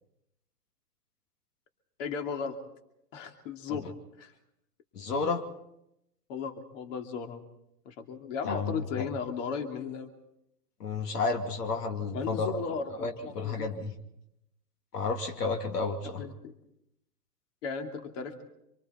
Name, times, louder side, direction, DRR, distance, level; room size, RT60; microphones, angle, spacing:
voice 1, 2.0-2.6 3.1-3.9 4.2-4.3 6.3-7.4 7.8-10.1 12.1-13.7 16.2-16.5 17.6-18.4, left 6 dB, 50° left, 4 dB, 2.7 m, -36 dB
voice 2, 4.9-5.4 8.4-9.0 10.8-12.6 13.0-13.9 14.9-16.2, left 4 dB, 80° left, 3 dB, 2.8 m, -31 dB
26.5 x 24.0 x 4.4 m, 0.80 s
hypercardioid pair, 125°, 47 cm